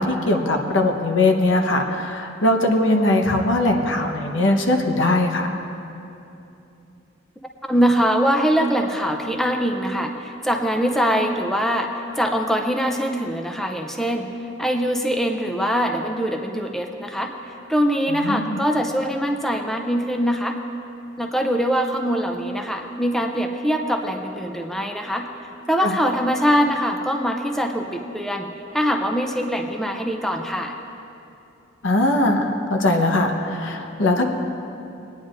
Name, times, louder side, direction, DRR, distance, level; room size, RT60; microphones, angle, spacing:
voice 1, 0.0-5.6 18.1-18.6 25.8-26.0 31.8-34.3, left 1 dB, 70° left, 3 dB, 1.0 m, -20 dB
voice 2, 7.6-14.3 14.6-17.3 17.7-20.6 21.2-25.3 25.7-28.5 28.7-30.7, equal, ahead, 3 dB, 0.5 m, -23 dB
21.5 x 9.5 x 2.5 m, 2.8 s
head